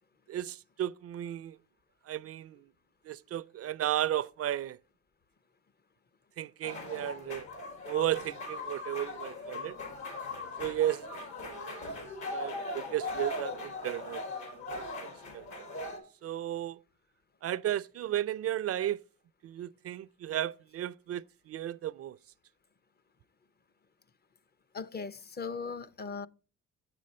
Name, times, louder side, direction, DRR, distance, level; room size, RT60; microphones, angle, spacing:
voice 1, 0.3-1.6 2.0-2.7 3.0-4.8 6.4-7.5 7.9-9.8 10.6-11.0 11.4-11.8 12.3-14.2 14.7-14.9 15.3-15.7 16.2-16.8 17.4-19.0 19.4-22.2, right 12 dB, 55° right, 0.4 m, -34 dB
sound 1, 6.6-16.0, left 2 dB, 75° left, 4.2 m, -39 dB
voice 2, 24.7-26.3, left 5 dB, 35° left, 0.6 m, -38 dB
8.7 x 7.6 x 4.2 m
cardioid pair, 90°, 30 cm